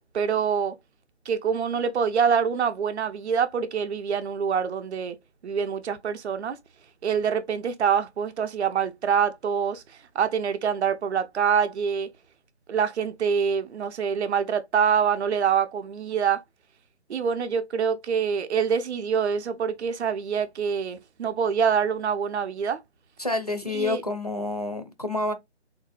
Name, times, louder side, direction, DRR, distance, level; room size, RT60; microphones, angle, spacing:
voice 1, 0.1-0.7 1.3-5.2 5.4-6.6 7.0-9.8 10.1-12.1 12.7-16.4 17.1-22.8 23.7-24.0, right 7 dB, 70° right, 0.5 m, -25 dB
voice 2, 23.2-25.3, left 2 dB, 35° left, 0.4 m, -28 dB
3.6 x 2.5 x 2.3 m
hypercardioid pair, 175°, 35 cm